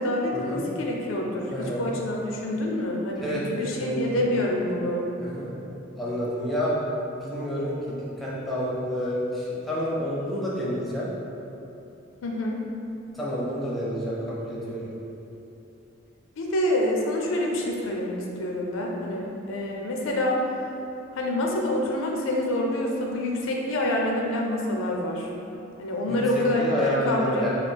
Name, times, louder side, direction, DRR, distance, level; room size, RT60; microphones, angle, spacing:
voice 1, 0.0-5.1 12.2-12.6 16.4-20.4 21.1-25.3 25.8-27.5, left 1 dB, 85° left, -1 dB, 0.4 m, -27 dB
voice 2, 1.5-1.9 3.2-3.4 3.8-4.2 5.2-5.5 6.0-6.8 7.2-11.1 13.1-14.9 26.1-27.6, equal, ahead, -7 dB, 0.5 m, -29 dB
3.2 x 2.3 x 3.3 m, 2.9 s
head